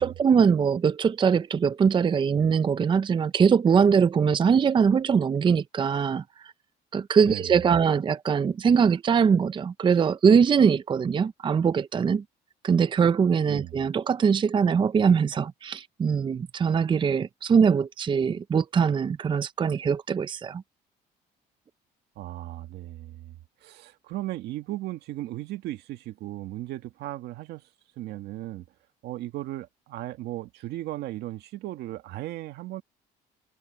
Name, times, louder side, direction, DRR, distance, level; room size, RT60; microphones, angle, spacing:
voice 1, 0.0-6.5 6.9-12.2 12.6-20.6, right 6 dB, 30° right, 0.6 m, -22 dB
voice 2, 7.2-7.6 13.5-13.8 22.2-23.4 23.6-27.6 28.0-28.7 29.0-32.8, right 15 dB, 80° right, 1.7 m, -36 dB
cardioid pair, 110°, 17 cm